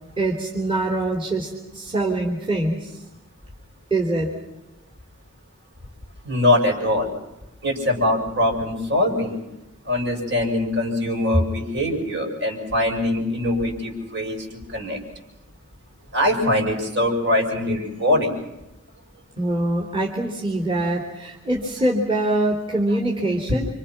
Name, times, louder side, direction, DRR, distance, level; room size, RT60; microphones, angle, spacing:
voice 1, 0.2-3.0 3.9-4.3 19.4-23.7, right 2 dB, 25° right, -2 dB, 3.3 m, -24 dB
voice 2, 6.2-7.1 7.6-9.3 9.9-14.4 14.7-15.0 16.1-18.3, left 1 dB, 55° right, 1 dB, 6.9 m, -22 dB
29.5 x 26.5 x 6.0 m, 0.93 s
head